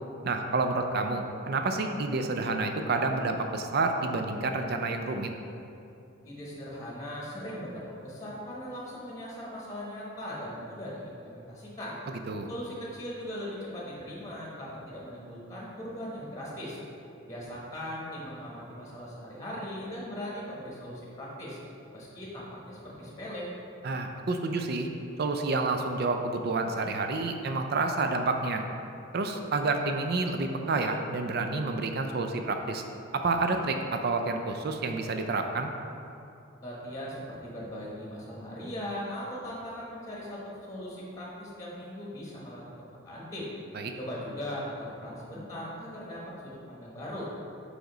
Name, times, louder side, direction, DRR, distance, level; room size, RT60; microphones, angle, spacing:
voice 1, 0.2-5.3 12.3-12.5 23.8-24.9 25.2-28.6 29.1-32.8 33.1-35.7 43.7-43.9, right 3 dB, 50° right, 5 dB, 0.4 m, -29 dB
voice 2, 6.2-12.0 12.5-16.8 17.3-21.6 21.9-23.5 36.6-42.6 43.0-43.5 43.9-47.3, equal, 15° left, -5 dB, 1.0 m, -39 dB
5.0 x 4.9 x 3.9 m, 2.7 s
head